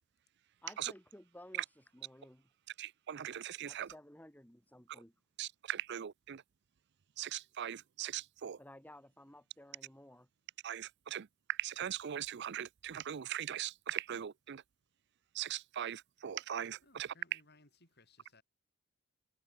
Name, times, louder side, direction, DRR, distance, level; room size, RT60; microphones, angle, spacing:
voice 1, 0.6-2.5 3.6-5.1 8.6-10.3, left 1 dB, 10° left, 2.2 m, -56 dB
voice 2, 2.8-3.9 5.4-6.4 7.2-8.6 10.6-11.3 11.6-14.6 15.4-17.1, right 10 dB, 55° right, 0.5 m, -40 dB
voice 3, 16.8-18.4, left 2 dB, 50° left, 6.7 m, -64 dB
head